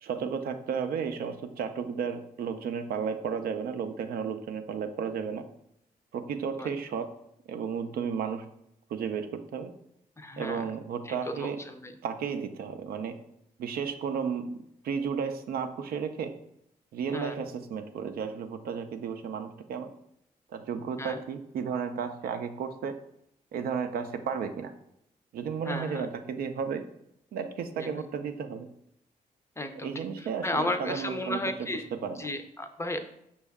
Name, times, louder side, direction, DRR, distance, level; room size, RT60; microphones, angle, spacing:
voice 1, 0.0-5.4 6.1-7.1 7.5-8.5 8.9-9.7 10.4-11.6 12.0-13.2 13.6-14.5 14.8-16.3 16.9-19.9 20.5-23.0 23.5-24.7 25.3-26.8 27.3-28.7 29.8-32.3, right 6 dB, 80° right, 7 dB, 0.4 m, -33 dB
voice 2, 10.2-10.6 11.1-11.9 17.1-17.4 21.0-21.2 25.6-26.1 27.8-28.0 29.6-29.9 30.2-31.9 32.2-33.0, left 1 dB, 20° left, 7 dB, 0.4 m, -34 dB
5.3 x 2.3 x 3.4 m, 0.78 s
cardioid pair, 70°, 15 cm